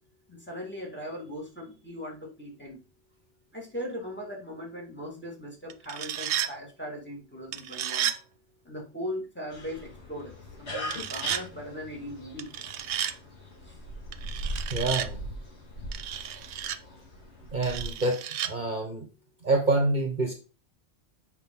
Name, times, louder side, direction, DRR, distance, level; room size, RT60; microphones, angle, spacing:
voice 1, 0.3-2.8 3.5-8.1 8.7-10.3 10.6-12.5 13.7-13.8, equal, 10° left, 0 dB, 1.8 m, -39 dB
sound 1, 5.7-6.5 7.5-8.2 10.8-11.4 12.4-13.2 14.1-15.1 15.9-16.8 17.6-18.5, right 10 dB, 75° right, 0.9 m, -32 dB
sound 2, 9.5-17.9, equal, 75° left, 2.2 m, -40 dB
voice 2, 14.7-15.2 17.5-18.2 18.4-19.1 19.4-20.3, right 2 dB, 45° right, 3 dB, 1.3 m, -26 dB
8.0 x 5.3 x 3.7 m, 0.33 s
omnidirectional pair, 1.2 m